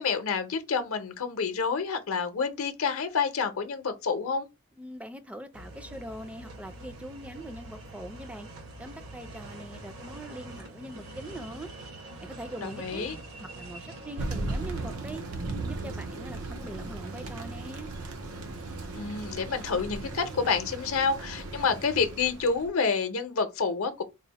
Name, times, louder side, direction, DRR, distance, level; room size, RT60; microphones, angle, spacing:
voice 1, 0.0-4.5 12.6-13.1 18.9-24.0, left 5 dB, 70° left, 0.6 m, -28 dB
voice 2, 4.7-8.5 8.8-11.7 12.2-13.1 13.4-15.2 15.6-17.9, right 1 dB, 5° right, 0.3 m, -42 dB
sound 1, 5.5-15.0, right 2 dB, 70° right, 1.0 m, -45 dB
Thunder, 14.2-22.7, right 2 dB, 85° right, 0.7 m, -37 dB
4.0 x 2.0 x 4.0 m
head